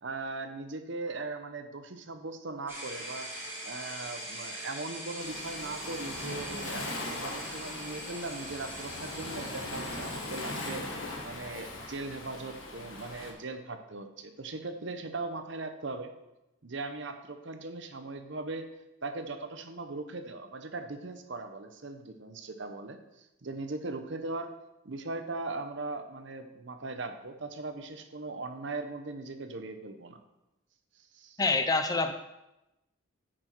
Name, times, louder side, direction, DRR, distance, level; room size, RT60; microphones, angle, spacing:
voice 1, 0.0-3.3 3.6-16.1 16.6-18.7 19.0-24.5 24.8-30.2 31.1-31.4, right 3 dB, 60° right, 7 dB, 0.8 m, -39 dB
sound 1, 2.7-10.8, right 1 dB, 10° right, 2.5 m, -42 dB
Waves surf, 5.2-13.3, left 2 dB, 75° left, 1.5 m, -40 dB
voice 2, 31.4-32.1, left 3 dB, 20° left, 7 dB, 0.5 m, -26 dB
9.0 x 6.1 x 4.5 m, 0.93 s
head